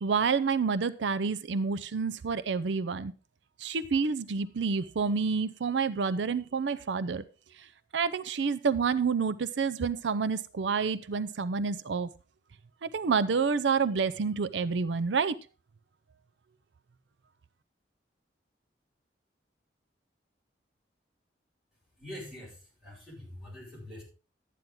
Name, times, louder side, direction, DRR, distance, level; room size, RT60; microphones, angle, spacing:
voice 1, 0.0-3.1 3.6-7.2 7.9-12.1 12.8-15.4, right 5 dB, 80° right, 15 dB, 0.5 m, -28 dB
voice 2, 22.0-24.0, left 1 dB, 5° right, -5 dB, 6.1 m, -44 dB
12.0 x 9.2 x 3.8 m, 0.33 s
head